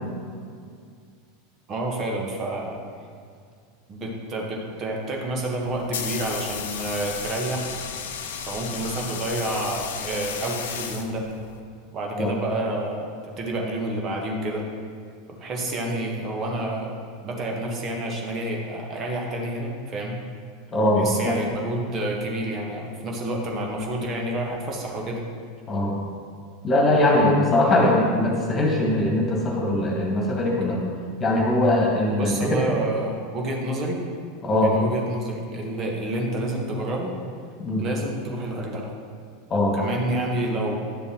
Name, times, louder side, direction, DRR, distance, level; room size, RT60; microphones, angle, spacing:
voice 1, 1.7-2.8 3.9-7.7 8.5-11.3 11.9-14.7 15.3-16.9 17.2-20.2 21.0-25.2 32.2-34.0 34.6-37.1 37.8-38.9 39.7-40.8, right 1 dB, 35° right, 0 dB, 1.4 m, -29 dB
sound 1, 5.6-11.6, left 7 dB, 65° left, 0.6 m, -34 dB
voice 2, 20.7-21.3 25.7-26.0 26.6-30.8 31.2-32.6 34.4-34.7 37.6-37.8 39.5-39.8, left 1 dB, 25° left, -1 dB, 1.8 m, -21 dB
10.5 x 7.0 x 3.1 m, 2.1 s
figure-of-eight pair, 80°, 0 cm